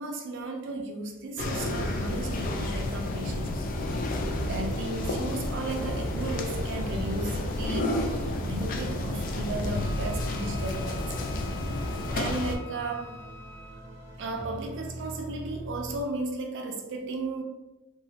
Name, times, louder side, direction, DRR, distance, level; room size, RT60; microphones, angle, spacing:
voice 1, 0.0-3.9 4.2-11.4 11.8-13.2 14.2-17.4, right 2 dB, 60° right, 3 dB, 0.5 m, -35 dB
sound 1, 1.4-12.6, left 1 dB, 40° left, 0.3 m, -31 dB
sound 2, 4.2-16.0, right 1 dB, 75° left, 1.0 m, -42 dB
Wind instrument woodwind instrument, 9.7-13.9, left 5 dB, 90° right, 0.7 m, -47 dB
2.9 x 2.3 x 2.8 m, 1.0 s
head